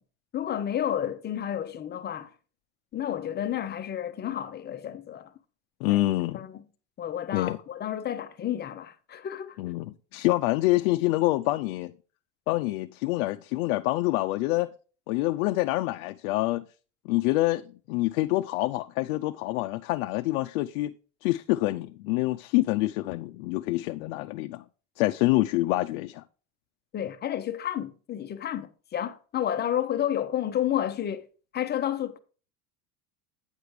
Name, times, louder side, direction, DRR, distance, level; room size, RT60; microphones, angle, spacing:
voice 1, 0.3-2.3 2.9-5.3 5.9-6.0 6.3-6.6 7.0-9.6 26.9-31.3 31.5-32.2, left 10 dB, 25° left, 0.7 m, -31 dB
voice 2, 5.8-6.5 7.3-7.6 9.6-11.9 12.5-14.7 15.1-16.6 17.0-20.9 21.2-24.6 25.0-26.2, left 18 dB, 70° left, 0.6 m, -26 dB
9.0 x 5.0 x 4.8 m
supercardioid pair, 130°, 42 cm